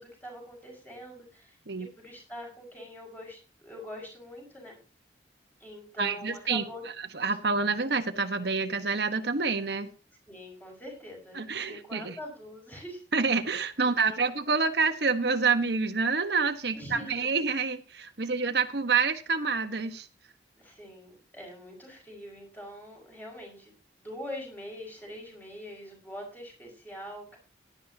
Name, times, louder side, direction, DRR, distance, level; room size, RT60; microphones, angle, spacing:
voice 1, 0.0-4.8 5.6-6.8 10.3-13.0 13.8-14.2 16.7-17.5 18.2-18.3 20.6-23.7 24.0-27.4, equal, 10° left, -1 dB, 5.7 m, -44 dB
voice 2, 6.0-6.6 7.0-9.9 11.3-12.2 13.1-20.1, right 4 dB, 65° right, 8 dB, 1.3 m, -27 dB
16.5 x 11.5 x 2.9 m, 0.34 s
head